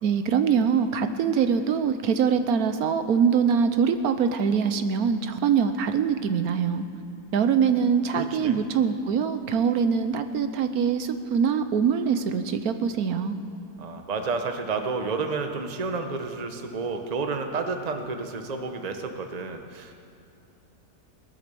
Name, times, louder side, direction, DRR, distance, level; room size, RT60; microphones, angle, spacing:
voice 1, 0.0-6.9 7.3-13.4, right 6 dB, 65° right, 9 dB, 1.1 m, -23 dB
voice 2, 8.1-8.6 13.8-19.9, right 4 dB, 30° right, 5 dB, 0.9 m, -30 dB
19.0 x 10.5 x 6.9 m, 2.7 s
omnidirectional pair, 1.9 m